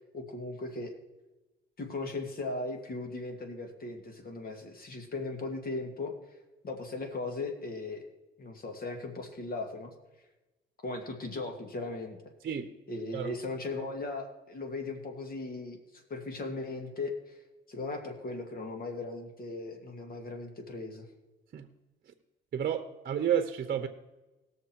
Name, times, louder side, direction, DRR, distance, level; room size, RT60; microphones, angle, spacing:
voice 1, 0.1-0.9 1.8-6.2 6.6-8.1 8.4-9.9 10.8-12.2 12.9-17.4 17.7-21.1, left 2 dB, 50° left, 4 dB, 2.4 m, -38 dB
voice 2, 22.5-23.9, right 9 dB, 50° right, 8 dB, 0.9 m, -30 dB
19.0 x 6.6 x 4.6 m, 1.1 s
cardioid pair, 90°, 20 cm